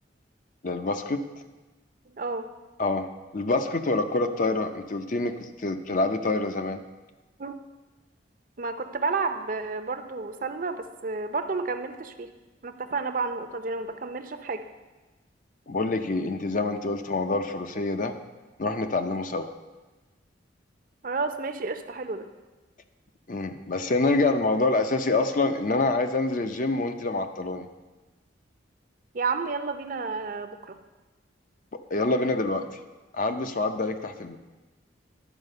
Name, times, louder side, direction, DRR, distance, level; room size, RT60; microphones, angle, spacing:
voice 1, 0.6-1.2 2.8-3.1 3.3-6.8 15.7-18.1 18.6-19.5 23.3-27.7 31.9-32.6 33.1-34.4, left 2 dB, 45° left, 8 dB, 0.6 m, -26 dB
voice 2, 2.0-2.5 7.4-7.6 8.6-12.3 12.6-14.6 21.0-22.3 29.1-30.8, right 4 dB, 45° right, 8 dB, 0.6 m, -31 dB
11.0 x 4.9 x 6.5 m, 1.2 s
head